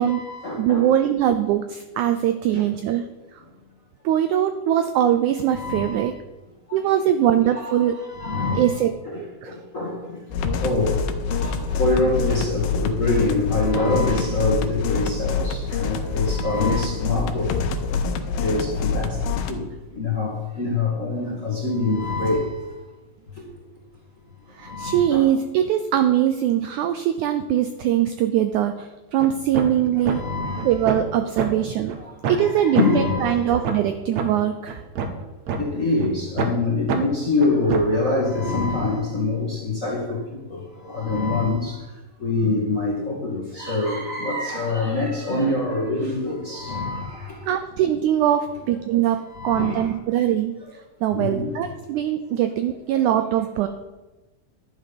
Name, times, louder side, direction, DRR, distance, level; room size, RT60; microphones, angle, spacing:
voice 1, 0.0-0.8 2.5-2.6 5.5-6.0 6.7-6.8 7.5-8.8 9.0-10.2 10.6-11.0 11.4-17.5 18.4-19.2 19.5-19.7 19.9-22.6 24.6-25.2 29.9-30.8 32.0-33.7 35.6-40.2 40.5-41.8 42.2-47.4 49.3-49.9 51.1-51.5 53.6-53.7, left 3 dB, 35° left, 1.3 m, -25 dB
voice 2, 0.6-3.0 3.3-3.4 4.0-6.1 6.7-8.0 8.5-9.0 9.4-9.5 15.7-15.8 24.5-30.2 30.6-31.9 32.3-34.8 47.5-50.5 51.0-53.7, right 10 dB, 90° right, 1.7 m, -22 dB
sound 1, 10.3-19.5, left 5 dB, 90° left, 2.7 m, -25 dB
sound 2, 29.2-29.3 29.5-29.8 30.1-30.2 30.6-31.1 31.4-31.5 31.9-32.0 32.2-32.5 32.8-32.9 33.3-33.4 33.6-33.8 34.2-34.3 34.7-35.6 36.0-36.1 36.4-36.6 36.9-37.0 37.4-38.0, right 5 dB, 65° right, 1.9 m, -25 dB
11.5 x 9.0 x 5.3 m
omnidirectional pair, 4.2 m